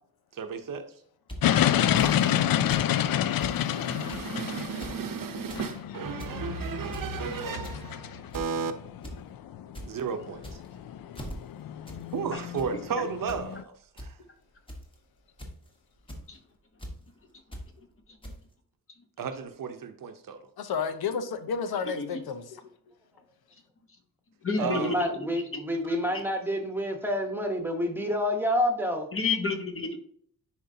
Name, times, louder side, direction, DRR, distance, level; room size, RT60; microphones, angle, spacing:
voice 1, 0.3-0.9 1.9-8.7 9.9-10.4 12.1-13.6 14.0-14.2 19.2-20.4 24.6-25.0, right 6 dB, 60° right, 0.8 m, -34 dB
sound 1, 1.3-1.4 2.0-2.1 2.7-2.9 3.1-3.6 4.1-4.3 4.7-5.0 5.3-5.7 6.0-6.4 6.9-7.2 7.6-7.9 8.3-8.6 9.0-9.2 9.5-9.9 10.4-10.8 11.1-11.4 11.9-12.0 12.3-12.7 13.3-13.4 14.0-14.1 14.7-14.9 15.4-15.7 16.1-16.2 16.8-16.9 17.5-17.7 18.2-18.3, equal, 15° left, 1.2 m, -40 dB
sound 2, 1.4-13.6, left 11 dB, 70° left, 0.5 m, -29 dB
voice 2, 7.2-7.7 20.6-22.4, left 6 dB, 85° left, 0.9 m, -32 dB
voice 3, 21.8-22.2 24.4-25.6 26.1-26.2 29.1-30.0, left 4 dB, 35° left, 1.0 m, -30 dB
voice 4, 24.6-29.1, equal, 5° right, 1.0 m, -28 dB
10.5 x 4.5 x 2.7 m
wide cardioid pair, 175°, 37 cm